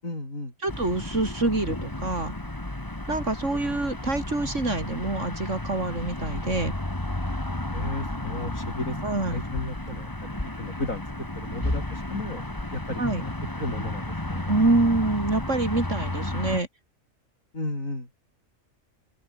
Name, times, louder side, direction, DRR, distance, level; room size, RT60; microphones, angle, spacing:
voice 1, 0.0-0.5 7.7-11.0 11.4-12.4 12.7-13.3 13.6-14.5 17.5-18.1, left 2 dB, 80° left, 7.7 m, -34 dB
voice 2, 0.6-2.3 3.1-6.7 9.0-9.4 13.0-13.2 14.5-16.7, right 2 dB, 60° right, 4.7 m, -26 dB
sound 1, 0.7-16.6, left 1 dB, 15° left, 2.3 m, -32 dB
open air
omnidirectional pair, 1.4 m